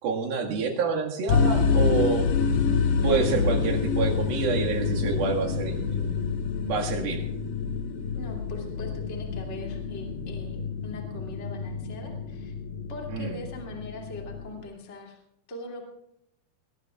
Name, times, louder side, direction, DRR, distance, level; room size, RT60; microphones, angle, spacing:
voice 1, 0.0-2.2 3.0-6.3 6.6-7.2 13.1-13.3, right 5 dB, 70° right, 1 dB, 3.7 m, -28 dB
sound 1, 1.3-14.6, left 5 dB, 90° left, 3.5 m, -27 dB
voice 2, 8.1-12.5 12.9-15.2 15.5-15.8, left 1 dB, 20° left, 1 dB, 2.4 m, -41 dB
21.0 x 20.0 x 2.4 m, 0.78 s
omnidirectional pair, 4.5 m